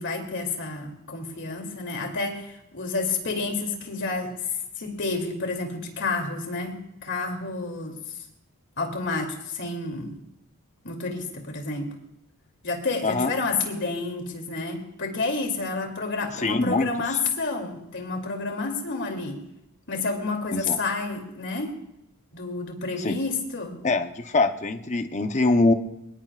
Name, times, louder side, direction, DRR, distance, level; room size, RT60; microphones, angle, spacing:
voice 1, 0.0-4.3 4.8-8.0 8.8-10.2 10.8-11.9 12.6-19.4 19.9-21.7 22.3-23.8, left 3 dB, 55° left, 2 dB, 2.9 m, -30 dB
voice 2, 16.4-17.2 20.5-20.8 23.0-23.2 23.8-25.7, left 3 dB, 35° left, 7 dB, 0.9 m, -23 dB
24.0 x 21.0 x 2.5 m, 0.85 s
head